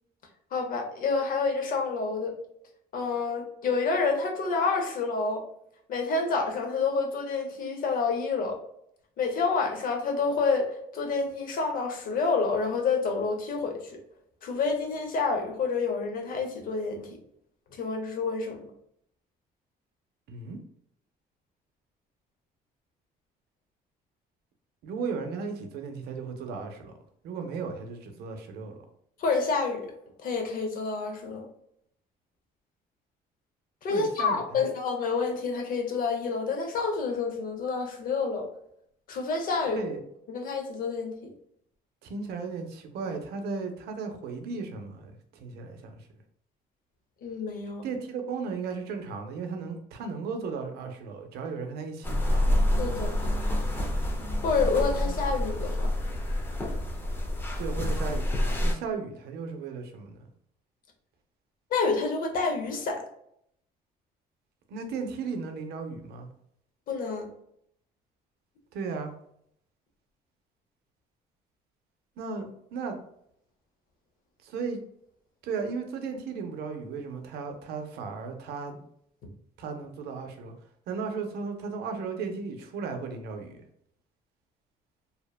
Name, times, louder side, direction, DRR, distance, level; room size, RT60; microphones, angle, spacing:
voice 1, 0.5-2.3 2.9-5.4 5.9-8.6 9.2-14.0 14.4-17.1 17.7-18.6 29.2-29.8 30.2-31.5 33.8-38.5 39.1-39.8 40.3-41.3 47.2-47.8 52.8-53.1 54.4-55.9 61.7-63.0 66.9-67.3, left 4 dB, 55° left, 3 dB, 0.7 m, -28 dB
voice 2, 20.3-20.6 24.8-26.9 27.2-28.8 33.9-34.6 39.8-40.0 42.0-45.9 47.8-52.5 57.6-60.3 64.7-66.3 68.7-69.1 72.2-73.0 74.4-74.8 75.4-78.8 79.6-80.5 80.9-83.6, right 5 dB, 75° right, 5 dB, 0.5 m, -35 dB
sound 1, 52.0-58.7, left 1 dB, 10° left, 0.4 m, -27 dB
2.7 x 2.1 x 2.2 m, 0.71 s
cardioid pair, 110°, 17 cm